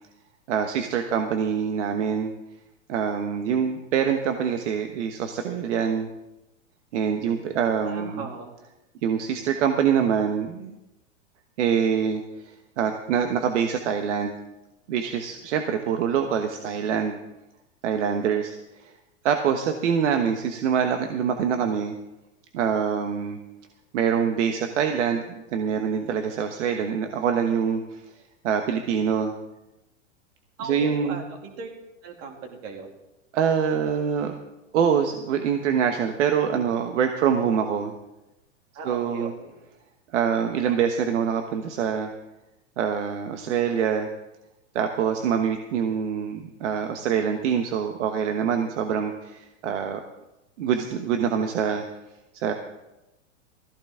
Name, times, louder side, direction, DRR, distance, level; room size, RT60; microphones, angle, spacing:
voice 1, 0.5-2.3 2.9-6.1 6.9-8.2 9.0-10.8 11.6-14.3 14.9-17.2 17.8-18.9 19.2-21.9 22.5-23.4 23.9-28.0 28.4-29.3 30.6-31.2 33.3-34.4 34.7-37.9 38.8-39.3 40.1-42.1 42.8-44.1 44.7-50.0 50.6-51.8 52.3-52.5, right 7 dB, 65° right, 6 dB, 1.2 m, -25 dB
voice 2, 7.8-8.5 30.6-31.7 32.0-32.9 38.7-39.5, right 4 dB, 40° right, 2 dB, 2.7 m, -37 dB
16.0 x 14.5 x 3.7 m, 0.96 s
hypercardioid pair, 125°, 38 cm